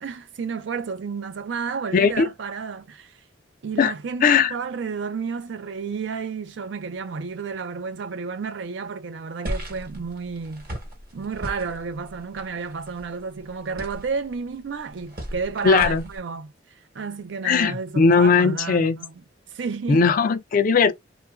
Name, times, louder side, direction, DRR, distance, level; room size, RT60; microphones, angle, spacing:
voice 1, 0.0-3.2 3.6-10.7 11.1-19.1 19.5-20.1, right 5 dB, 70° right, 0.4 m, -31 dB
voice 2, 1.9-2.3 3.8-3.9 4.2-4.5 15.6-16.1 17.4-19.0 19.9-20.9, left 5 dB, 45° left, 0.4 m, -18 dB
sound 1, 9.4-16.2, equal, 50° right, 1.0 m, -37 dB
2.9 x 2.4 x 2.2 m
head